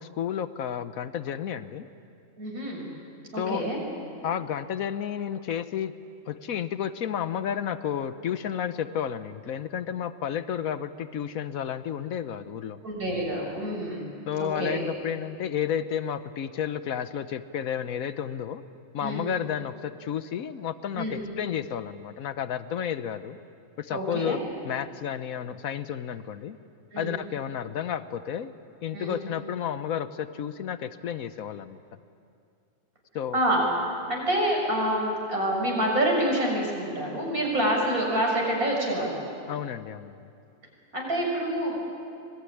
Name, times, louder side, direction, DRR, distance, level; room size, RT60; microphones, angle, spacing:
voice 1, 0.0-1.9 3.4-3.7 4.2-5.9 6.3-12.8 14.3-18.6 18.9-23.4 23.8-26.6 27.0-28.5 28.8-31.8 33.1-33.4 39.5-40.3, left 9 dB, 80° left, 12 dB, 1.2 m, -31 dB
voice 2, 2.4-2.9 3.3-3.8 12.8-14.1 14.4-14.8 19.0-19.3 21.0-21.2 23.9-24.4 26.9-27.1 28.9-29.2 33.3-39.2 40.9-41.8, right 1 dB, 90° right, -1 dB, 7.1 m, -27 dB
25.5 x 21.0 x 10.0 m, 2.5 s
omnidirectional pair, 1.5 m